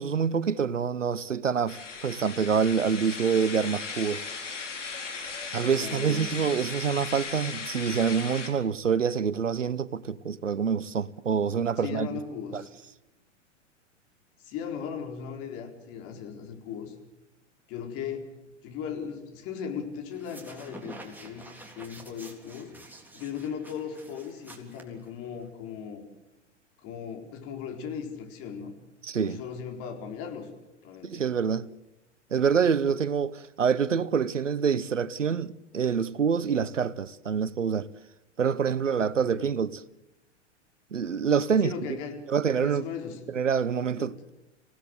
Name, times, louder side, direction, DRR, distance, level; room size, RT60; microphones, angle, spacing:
voice 1, 0.0-4.2 5.5-12.1 12.5-12.6 29.1-29.4 31.0-31.7 32.3-37.9 38.4-39.8 40.9-41.7 42.3-42.8 43.3-44.3, right 6 dB, 85° right, 0.9 m, -26 dB
sound 1, 1.7-8.5, left 5 dB, 75° left, 4.6 m, -37 dB
voice 2, 5.5-6.4 11.8-12.7 14.4-16.9 17.7-18.3 18.6-22.8 23.1-26.0 26.8-28.7 29.2-30.5 30.8-31.2 39.2-39.5 41.6-42.3 42.6-43.2 44.0-44.2, left 7 dB, 40° left, 4.5 m, -37 dB
sound 2, 20.1-25.5, right 2 dB, 5° right, 3.6 m, -48 dB
26.5 x 17.5 x 8.1 m
figure-of-eight pair, 105°, 37 cm